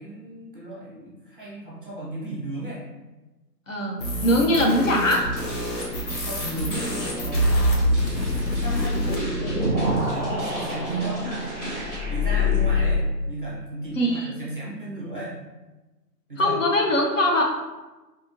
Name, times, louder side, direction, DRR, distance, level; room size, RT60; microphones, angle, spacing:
voice 1, 0.0-2.8 6.2-7.5 8.0-11.3 12.1-15.4 16.3-16.6, right 1 dB, 35° right, -5 dB, 0.5 m, -35 dB
voice 2, 3.7-5.2 14.0-14.3 16.4-17.4, left 1 dB, 55° left, 0 dB, 0.5 m, -21 dB
sound 1, 4.0-9.2, equal, 90° left, 1.0 m, -30 dB
sound 2, 5.2-12.0, right 1 dB, 25° left, 1.1 m, -39 dB
sound 3, 7.3-13.0, left 1 dB, 5° left, 0.6 m, -24 dB
2.7 x 2.6 x 2.4 m, 1.1 s
hypercardioid pair, 155°, 49 cm